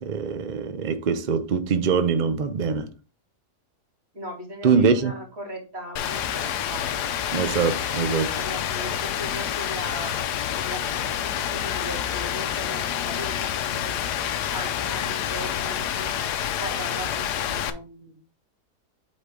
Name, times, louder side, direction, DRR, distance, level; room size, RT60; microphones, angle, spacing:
voice 1, 0.0-2.9 4.6-5.1 7.3-8.4, right 5 dB, 65° right, 0.4 m, -23 dB
voice 2, 4.1-7.1 8.3-13.9 14.5-18.1, equal, 40° right, 2.7 m, -38 dB
Rain, 6.0-17.7, left 10 dB, 80° left, 1.3 m, -28 dB
8.2 x 4.3 x 3.7 m
omnidirectional pair, 1.7 m